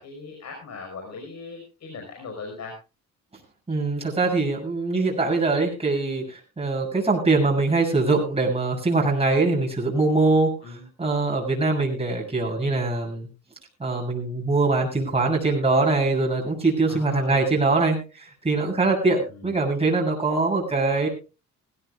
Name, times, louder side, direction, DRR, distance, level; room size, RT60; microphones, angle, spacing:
voice 1, 0.0-2.8 10.6-10.9 16.9-17.4 19.3-19.5, left 4 dB, 60° left, 2 dB, 5.3 m, -39 dB
voice 2, 3.7-13.3 13.8-21.1, right 3 dB, 20° right, -1 dB, 7.2 m, -23 dB
21.0 x 16.0 x 2.4 m, 0.30 s
cardioid pair, 90°, 30 cm